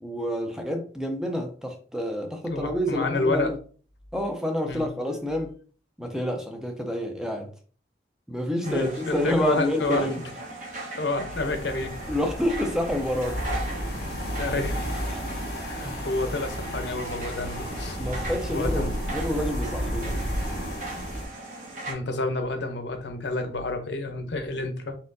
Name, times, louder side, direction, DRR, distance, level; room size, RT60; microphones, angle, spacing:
voice 1, 0.0-3.6 4.1-5.5 6.0-7.5 8.3-10.2 12.1-13.4 15.1-15.2 15.8-16.0 18.0-20.2, left 1 dB, 5° right, 3 dB, 0.5 m, -28 dB
voice 2, 2.4-3.5 4.7-4.9 8.7-10.1 11.0-12.0 14.3-14.9 15.6-18.0 18.5-18.9 21.9-25.0, left 2 dB, 75° left, 7 dB, 0.7 m, -29 dB
sound 1, 8.6-21.9, right 2 dB, 45° right, 1.0 m, -39 dB
sound 2, 11.3-21.3, equal, 55° left, 1.3 m, -32 dB
4.3 x 3.7 x 2.6 m, 0.41 s
head